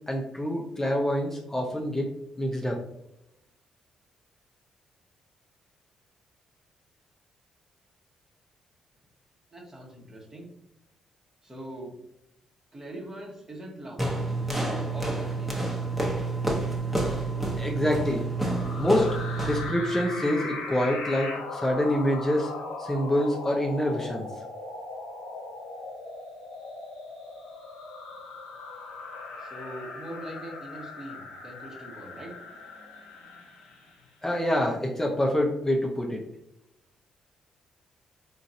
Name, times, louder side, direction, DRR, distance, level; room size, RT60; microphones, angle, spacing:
voice 1, 0.1-2.1 2.4-2.8 17.6-18.3 18.8-19.2 19.4-22.5 22.8-24.3 34.2-36.2, left 1 dB, 20° left, 0 dB, 0.6 m, -26 dB
voice 2, 9.5-10.5 11.4-12.0 12.7-14.1 14.6-15.7 29.4-32.3, right 1 dB, 25° right, -2 dB, 1.1 m, -42 dB
sound 1, 14.0-19.8, right 2 dB, 5° right, 1.0 m, -29 dB
sound 2, 18.3-34.0, left 3 dB, 85° left, 0.7 m, -39 dB
3.8 x 2.5 x 2.6 m, 0.81 s
hypercardioid pair, 45°, 2 cm